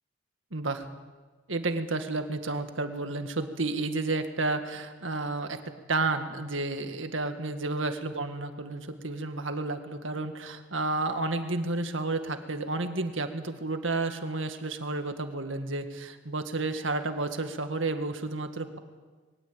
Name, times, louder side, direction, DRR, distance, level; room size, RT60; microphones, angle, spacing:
voice 1, 0.5-0.9 1.5-5.6 5.9-18.8, right 3 dB, 75° right, 7 dB, 1.9 m, -31 dB
22.0 x 19.0 x 8.7 m, 1.4 s
head